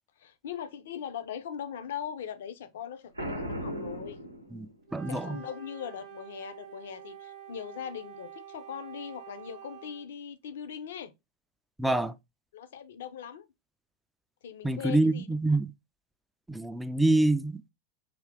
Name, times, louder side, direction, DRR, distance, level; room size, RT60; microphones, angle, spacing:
voice 1, 0.2-4.2 5.1-11.1 12.5-13.5 14.4-15.6, left 8 dB, 60° left, 0.5 m, -40 dB
Boom, 3.2-5.0, equal, 85° right, 0.7 m, -36 dB
voice 2, 4.5-5.4 11.8-12.1 14.6-15.7 16.5-17.6, right 2 dB, 5° right, 0.3 m, -26 dB
Wind instrument woodwind instrument, 4.9-10.1, right 9 dB, 40° right, 0.8 m, -47 dB
3.7 x 2.7 x 3.3 m
figure-of-eight pair, 90°, 0 cm